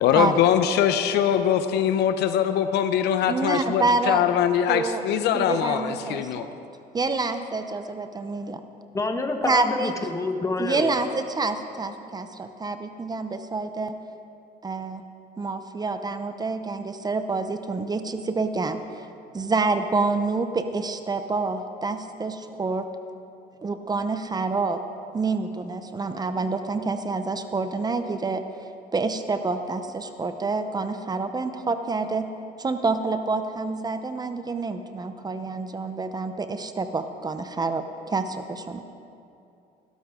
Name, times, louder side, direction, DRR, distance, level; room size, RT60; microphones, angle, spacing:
voice 1, 0.0-6.5, left 9 dB, 80° left, 9 dB, 0.8 m, -22 dB
voice 2, 3.3-4.2 4.7-5.0 5.3-6.5 6.9-8.6 9.5-9.9 10.6-14.0 14.6-15.0 15.4-19.1 19.3-22.8 23.6-24.8 25.1-28.4 28.9-32.3 32.6-38.8, right 3 dB, 25° right, 9 dB, 0.7 m, -27 dB
voice 3, 8.9-10.9, left 3 dB, 20° left, 5 dB, 1.3 m, -27 dB
20.0 x 12.5 x 3.7 m, 2.7 s
cardioid pair, 110°, 17 cm